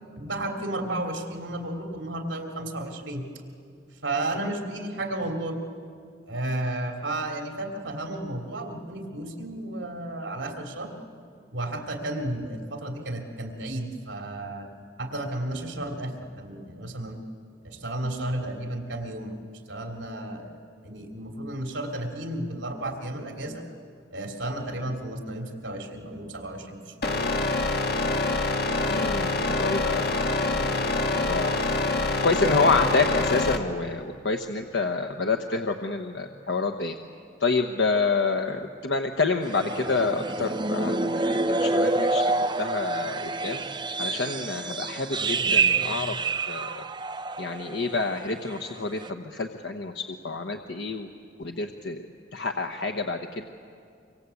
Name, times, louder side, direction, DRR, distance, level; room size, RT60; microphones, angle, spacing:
voice 1, 0.2-3.3 4.0-5.6 6.3-10.9 11.5-14.7 15.0-17.2 17.6-19.4 19.7-20.6 20.8-23.6 24.1-27.1, right 1 dB, 75° right, 3 dB, 3.1 m, -33 dB
sound 1, 27.0-33.6, left 2 dB, 55° left, 1.7 m, -26 dB
voice 2, 28.9-30.3 30.6-30.8 31.1-31.7 32.2-37.0 37.4-43.6 44.0-46.2 46.5-46.9 47.4-51.1 51.4-52.1 52.3-53.5, left 3 dB, 75° left, 5 dB, 1.1 m, -28 dB
sound 2, 39.4-48.0 48.3-48.6 49.0-49.1, right 3 dB, 25° right, 0.8 m, -27 dB
25.0 x 24.5 x 8.4 m, 2.3 s
head